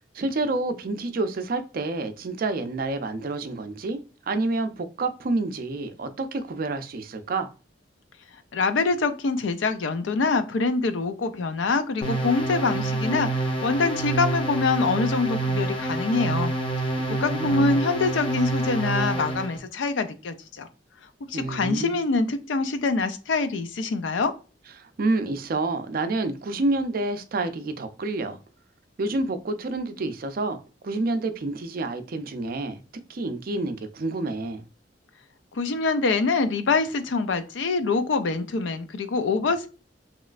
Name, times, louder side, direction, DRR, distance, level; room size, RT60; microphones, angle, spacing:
voice 1, 0.1-4.0 4.3-7.5 17.0-17.8 21.3-22.0 24.8-28.4 29.0-30.6 30.8-32.8 33.1-34.6, right 2 dB, 50° right, 0.4 m, -28 dB
voice 2, 8.5-16.5 16.8-20.7 21.3-24.3 35.5-39.7, left 4 dB, 90° left, 0.4 m, -25 dB
sound 1, 12.0-19.6, right 2 dB, 30° left, 0.6 m, -27 dB
3.1 x 3.0 x 2.4 m
head